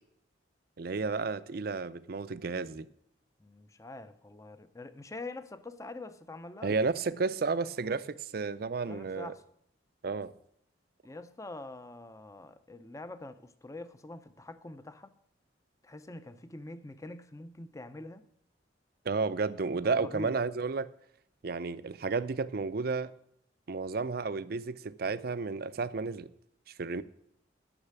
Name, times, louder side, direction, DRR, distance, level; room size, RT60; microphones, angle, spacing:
voice 1, 0.8-2.9 6.6-9.3 10.0-10.3 19.1-20.9 21.4-23.1 23.7-26.3 26.8-27.0, right 4 dB, 55° right, 0.5 m, -32 dB
voice 2, 3.4-6.8 8.8-9.4 11.0-15.1 15.8-18.3 19.8-20.4, left 2 dB, 15° left, 0.6 m, -45 dB
9.9 x 6.5 x 8.2 m
head